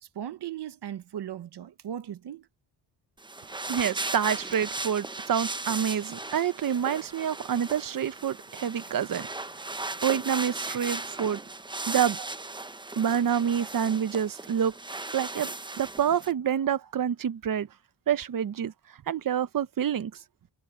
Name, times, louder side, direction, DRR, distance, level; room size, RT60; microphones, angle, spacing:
voice 1, 0.0-2.5 4.0-4.1 12.2-12.3, right 10 dB, 70° right, 1.3 m, -38 dB
sound 1, 3.2-16.3, right 2 dB, 10° right, 0.8 m, -37 dB
voice 2, 3.7-9.3 10.0-11.4 11.9-12.2 13.0-14.7 15.1-17.7 18.1-18.7 19.1-20.1, right 8 dB, 50° right, 1.0 m, -27 dB
cardioid pair, 85°, 42 cm